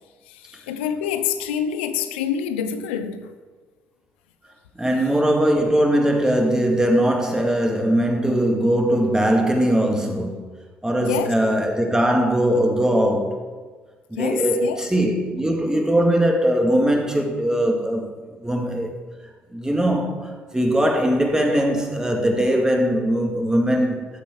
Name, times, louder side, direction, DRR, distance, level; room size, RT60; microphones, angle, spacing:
voice 1, 0.5-3.3 11.0-11.3 14.2-14.8, left 8 dB, 80° left, 0.6 m, -26 dB
voice 2, 4.8-10.4 10.8-13.3 14.1-18.9 19.5-24.1, right 1 dB, 10° right, 2.1 m, -20 dB
12.5 x 7.4 x 4.5 m
hypercardioid pair, 45°, 6 cm